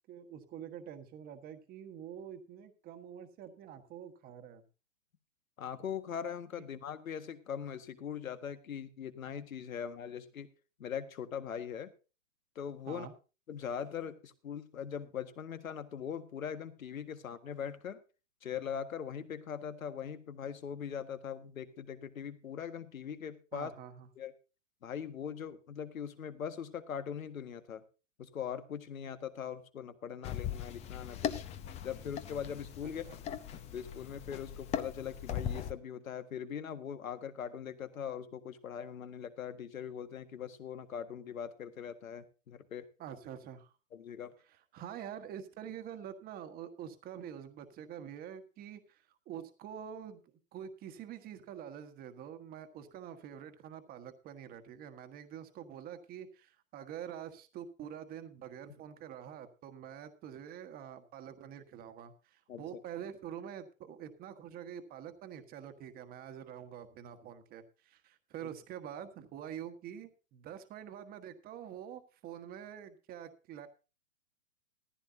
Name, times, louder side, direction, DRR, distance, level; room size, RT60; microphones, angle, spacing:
voice 1, 0.1-4.6 12.9-13.1 23.5-24.1 33.0-33.2 43.0-43.7 44.7-50.2 50.5-73.7, right 9 dB, 20° right, 9 dB, 1.4 m, -46 dB
voice 2, 5.6-10.5 10.8-11.9 12.5-13.1 13.5-18.0 18.4-23.7 24.2-24.3 24.8-27.8 28.2-31.4 31.8-33.0 33.7-42.9 43.9-44.3 62.5-62.6, left 8 dB, 80° left, 10 dB, 1.7 m, -41 dB
sound 1, 30.2-35.7, left 9 dB, 15° left, 0.7 m, -39 dB
15.0 x 14.5 x 2.7 m, 0.32 s
hypercardioid pair, 135°, 41 cm